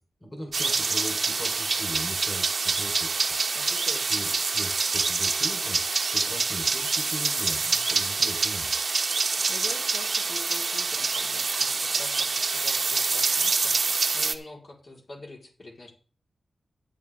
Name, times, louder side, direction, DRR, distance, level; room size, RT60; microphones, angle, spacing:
voice 1, 0.2-3.3 4.1-5.8 6.1-8.7, equal, 20° left, 3 dB, 3.9 m, -39 dB
sound 1, 0.5-14.4, right 4 dB, 55° right, 1.1 m, -26 dB
voice 2, 3.5-4.4 9.5-15.9, left 2 dB, 50° left, -1 dB, 4.2 m, -44 dB
13.0 x 9.5 x 3.6 m, 0.40 s
wide cardioid pair, 85°, 0 cm